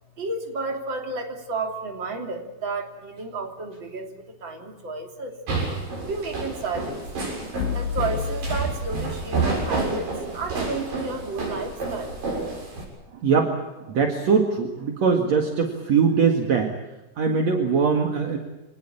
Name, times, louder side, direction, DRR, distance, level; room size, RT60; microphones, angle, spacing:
voice 1, 0.2-5.4 6.0-7.0 7.7-12.2, right 3 dB, 35° right, 3 dB, 3.6 m, -32 dB
sound 1, 5.5-12.8, right 3 dB, 90° right, 8.7 m, -29 dB
sound 2, 7.6-9.7, left 7 dB, 80° left, 3.2 m, -31 dB
voice 2, 13.1-16.7 17.2-18.4, right 5 dB, 55° right, 3 dB, 3.0 m, -22 dB
26.0 x 19.0 x 8.7 m, 1.1 s
omnidirectional pair, 3.9 m